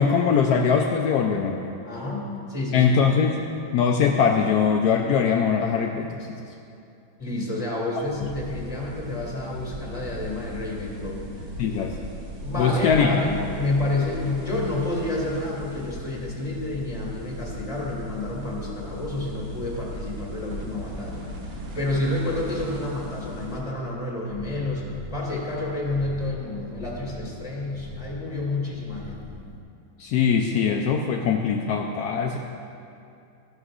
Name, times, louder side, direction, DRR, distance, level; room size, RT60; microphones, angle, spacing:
voice 1, 0.0-1.7 2.7-3.5 3.7-6.4 8.2-8.3 11.6-11.9 12.6-13.1 30.0-32.4, left 6 dB, 75° left, 1 dB, 0.9 m, -22 dB
voice 2, 1.8-2.9 7.2-11.2 12.4-21.3 21.7-24.8 25.1-29.2, left 2 dB, 15° left, -4 dB, 2.1 m, -29 dB
sound 1, 8.0-23.6, equal, 75° right, 2.0 m, -37 dB
sound 2, 24.3-29.6, left 2 dB, 50° left, 0.7 m, -41 dB
14.5 x 11.0 x 2.5 m, 2.6 s
omnidirectional pair, 2.2 m